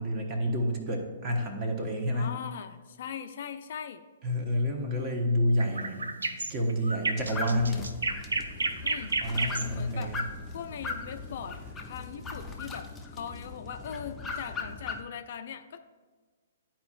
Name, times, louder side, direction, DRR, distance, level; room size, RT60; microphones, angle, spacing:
voice 1, 0.0-2.4 4.2-6.1 6.5-7.9 9.2-10.2, equal, 30° right, 2 dB, 1.1 m, -29 dB
voice 2, 2.1-4.0 7.1-7.5 8.8-9.1 9.7-10.1 10.5-11.6 11.9-15.8, left 8 dB, 50° left, 9 dB, 0.4 m, -40 dB
sound 1, 5.6-11.7, right 3 dB, 70° right, 0.5 m, -32 dB
sound 2, 7.2-15.0, left 4 dB, 10° left, 0.7 m, -39 dB
12.0 x 4.5 x 2.4 m, 1.4 s
figure-of-eight pair, 120°, 0 cm